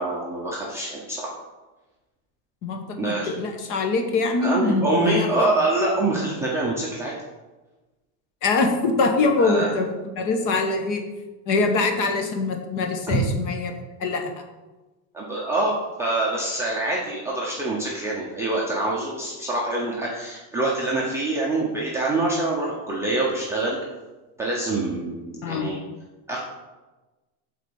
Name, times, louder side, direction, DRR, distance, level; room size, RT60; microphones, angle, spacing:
voice 1, 0.0-1.3 3.0-3.3 4.4-7.1 9.4-9.7 13.1-13.2 15.1-23.8 24.4-25.8 26.3-26.4, right 2 dB, 5° right, -6 dB, 0.7 m, -25 dB
voice 2, 2.6-5.5 8.4-11.0 11.5-13.7 14.0-14.3 25.4-25.7, left 3 dB, 40° left, 4 dB, 1.1 m, -23 dB
8.1 x 4.2 x 6.9 m, 1.1 s
cardioid pair, 180°, 48 cm